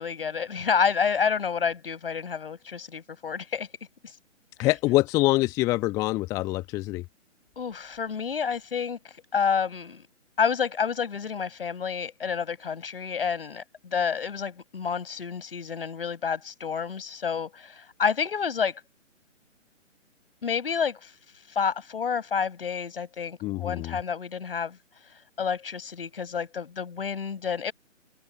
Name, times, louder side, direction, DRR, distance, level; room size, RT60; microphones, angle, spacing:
voice 1, 0.0-3.7 4.6-4.7 7.6-10.1 10.4-18.8 20.4-21.1 21.5-24.8 25.4-27.7, left 6 dB, 50° left, 5.6 m, -29 dB
voice 2, 4.6-7.0 23.4-24.0, left 19 dB, 10° left, 1.1 m, -25 dB
figure-of-eight pair, 140°, 38 cm